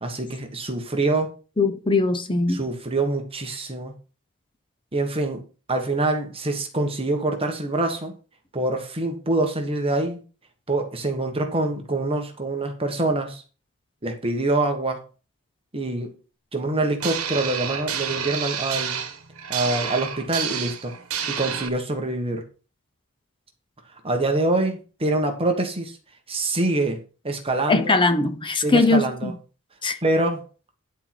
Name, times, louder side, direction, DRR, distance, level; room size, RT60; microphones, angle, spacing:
voice 1, 0.0-1.3 2.5-3.9 4.9-5.4 5.7-8.1 8.5-10.2 10.7-13.4 14.0-15.0 15.7-16.1 16.5-19.0 19.5-20.9 21.3-22.5 24.0-25.9 26.3-28.0 28.6-29.3 30.0-30.4, right 2 dB, 25° right, 1.4 m, -25 dB
voice 2, 1.6-2.6 27.7-29.3 29.8-30.0, left 3 dB, 25° left, 0.8 m, -21 dB
sound 1, 17.0-21.7, right 8 dB, 70° right, 1.5 m, -29 dB
11.0 x 4.5 x 6.0 m
head